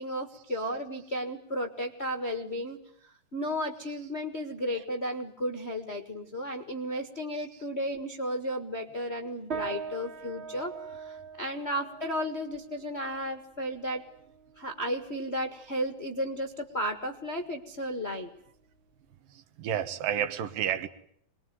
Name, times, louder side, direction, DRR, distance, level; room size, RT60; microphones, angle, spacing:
voice 1, 0.0-14.0 14.6-18.3, equal, 35° left, 1.0 m, -34 dB
sound 1, 9.5-19.1, right 6 dB, 25° right, 1.6 m, -44 dB
voice 2, 19.3-20.9, right 9 dB, 75° right, 2.9 m, -31 dB
25.0 x 21.0 x 9.4 m
omnidirectional pair, 4.0 m